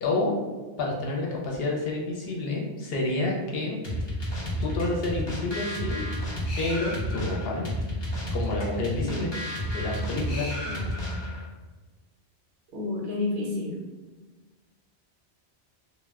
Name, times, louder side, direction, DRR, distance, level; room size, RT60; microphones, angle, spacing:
voice 1, 0.0-0.4 0.8-3.8 4.6-6.0 6.6-7.7 8.3-9.3 9.7-10.6, left 2 dB, 65° left, -2 dB, 0.7 m, -29 dB
sound 1, 3.8-11.5, equal, 45° left, 0.3 m, -31 dB
voice 2, 12.7-13.8, left 3 dB, 70° right, -2 dB, 0.8 m, -30 dB
2.1 x 2.1 x 3.3 m, 1.3 s
omnidirectional pair, 1.1 m